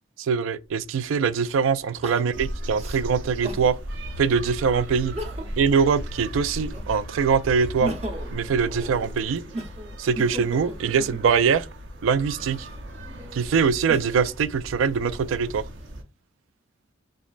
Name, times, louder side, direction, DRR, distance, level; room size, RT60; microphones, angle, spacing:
voice 1, 0.2-3.8 4.2-5.1 5.6-7.9 8.3-9.4 10.0-11.7 12.0-12.7 13.3-15.6, right 6 dB, 85° right, 0.3 m, -23 dB
Crying sobbing, 0.7-0.8 2.0-3.7 4.2-4.3 5.0-5.7 6.1-7.1 7.6-11.6 12.3-14.3 14.9-15.7, right 1 dB, 35° right, 0.7 m, -38 dB
sound 1, 2.3-16.0, right 1 dB, 70° right, 0.7 m, -37 dB
sound 2, 3.9-14.0, left 3 dB, 40° left, 0.3 m, -45 dB
3.9 x 3.2 x 2.4 m
head